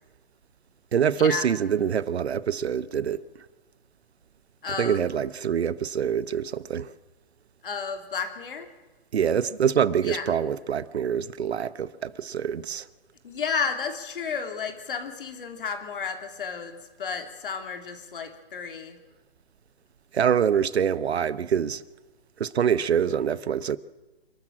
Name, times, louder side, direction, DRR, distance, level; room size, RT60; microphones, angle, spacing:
voice 1, 0.9-3.2 4.7-6.9 9.1-12.9 20.1-21.8 22.4-23.8, right 8 dB, 80° right, 1.0 m, -25 dB
voice 2, 4.6-5.0 7.6-8.7 10.0-10.2 13.2-19.0, left 6 dB, 55° left, 3.1 m, -32 dB
27.5 x 12.5 x 7.5 m
hypercardioid pair, 170°, 32 cm